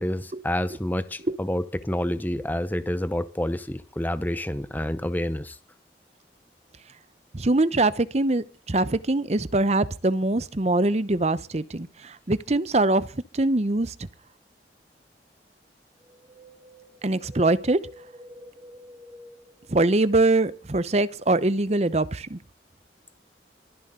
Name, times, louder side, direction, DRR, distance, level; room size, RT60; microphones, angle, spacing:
voice 1, 0.0-5.6, left 1 dB, 10° left, 0.8 m, -28 dB
voice 2, 7.3-13.9 17.0-17.8 19.7-22.4, right 2 dB, 35° right, 0.8 m, -23 dB
Wind, 16.0-20.3 20.6-20.7, equal, 15° right, 1.3 m, -49 dB
24.0 x 10.5 x 3.8 m
head